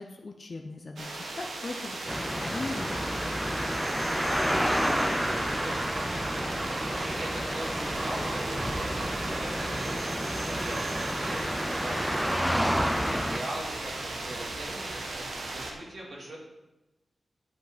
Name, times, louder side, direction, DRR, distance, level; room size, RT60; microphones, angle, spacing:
voice 1, 0.0-3.2 3.4-3.5, left 3 dB, 40° left, 3 dB, 0.7 m, -39 dB
sound 1, 1.0-15.7, right 2 dB, 90° right, 1.5 m, -36 dB
sound 2, 2.1-13.4, equal, ahead, 0.6 m, -30 dB
sound 3, 3.0-12.9, right 3 dB, 45° right, 0.3 m, -41 dB
voice 2, 4.2-16.4, right 1 dB, 65° right, -4 dB, 3.0 m, -42 dB
8.2 x 7.8 x 5.0 m, 1.0 s
wide cardioid pair, 125°, 0 cm